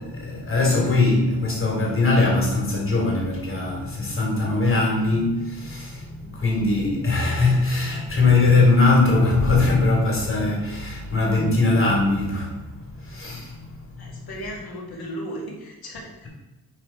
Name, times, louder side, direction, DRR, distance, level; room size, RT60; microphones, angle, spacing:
voice 1, 0.0-14.3, left 3 dB, 35° left, -2 dB, 2.9 m, -21 dB
voice 2, 14.0-16.3, equal, 90° left, -2 dB, 2.3 m, -35 dB
9.7 x 4.3 x 4.4 m, 1.1 s
wide cardioid pair, 120°, 36 cm